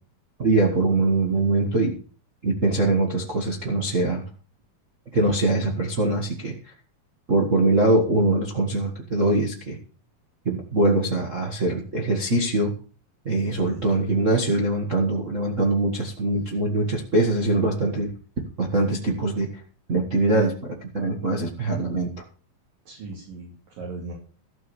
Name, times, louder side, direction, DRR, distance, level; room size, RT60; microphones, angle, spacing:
voice 1, 0.4-2.0 2.4-4.2 5.1-6.6 7.3-9.8 10.4-12.8 13.2-18.1 18.6-19.6 19.9-20.5 20.9-22.1, right 2 dB, 85° right, -1 dB, 0.7 m, -22 dB
voice 2, 22.9-24.1, right 3 dB, 60° right, -4 dB, 4.6 m, -38 dB
13.5 x 6.7 x 7.0 m, 0.40 s
omnidirectional pair, 4.5 m